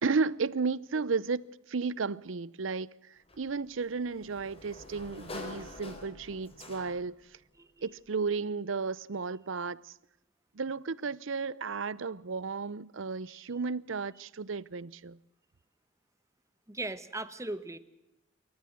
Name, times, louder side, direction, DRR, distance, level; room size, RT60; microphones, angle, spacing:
voice 1, 0.0-2.9 3.4-7.1 7.8-9.8 10.6-15.2, right 4 dB, 75° right, 0.7 m, -33 dB
Sliding door, 3.3-7.2, left 2 dB, 30° left, 4.0 m, -46 dB
voice 2, 7.6-7.9 13.3-13.4 16.7-17.8, right 2 dB, 15° right, 1.2 m, -39 dB
28.0 x 14.0 x 7.7 m
head